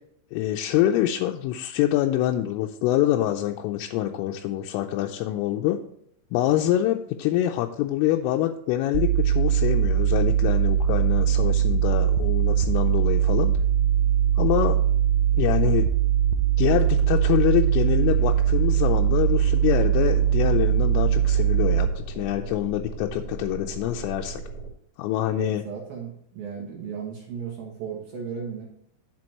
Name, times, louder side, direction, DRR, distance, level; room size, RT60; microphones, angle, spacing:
voice 1, 0.3-5.8 6.3-13.5 14.4-14.8 15.3-15.9 16.6-24.4 25.0-25.6, left 13 dB, 85° left, 2 dB, 3.2 m, -25 dB
sound 1, 8.9-21.9, right 10 dB, 85° right, 2.5 m, -21 dB
sound 2, 16.7-24.7, right 3 dB, 25° left, 2.9 m, -37 dB
voice 2, 25.3-28.7, right 7 dB, 60° right, -1 dB, 2.6 m, -35 dB
10.5 x 7.1 x 3.0 m, 0.71 s
omnidirectional pair, 5.8 m